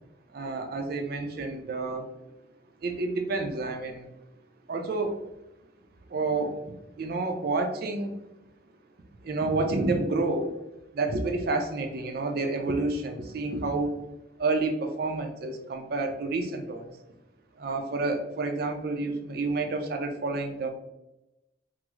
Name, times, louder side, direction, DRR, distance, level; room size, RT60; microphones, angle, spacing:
voice 1, 0.3-2.1 2.8-4.1 4.7-5.2 6.1-6.6 7.0-8.2 9.2-10.5 10.9-14.0 14.4-16.9 17.6-20.7, right 3 dB, 55° right, 5 dB, 0.5 m, -29 dB
3.1 x 2.0 x 3.5 m, 0.92 s
head